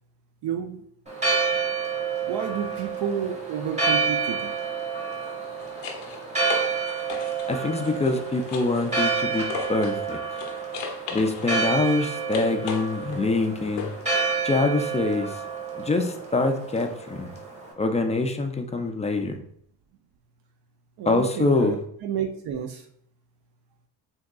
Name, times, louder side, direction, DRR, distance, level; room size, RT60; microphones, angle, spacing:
voice 1, 0.4-0.8 2.3-4.5 21.0-22.9, right 8 dB, 65° right, 3 dB, 0.5 m, -30 dB
Church bell, 1.1-17.7, right 5 dB, 15° right, 1.1 m, -29 dB
sound 1, 2.6-2.8 5.1-10.0 10.4-14.1 16.8-16.9, left 5 dB, 85° left, 0.7 m, -38 dB
voice 2, 7.5-10.2 11.1-13.9 14.4-15.4 15.8-17.3 17.8-19.4 21.1-21.7, left 3 dB, 15° left, 5 dB, 0.3 m, -25 dB
3.6 x 2.8 x 2.3 m, 0.67 s
supercardioid pair, 75°, 43 cm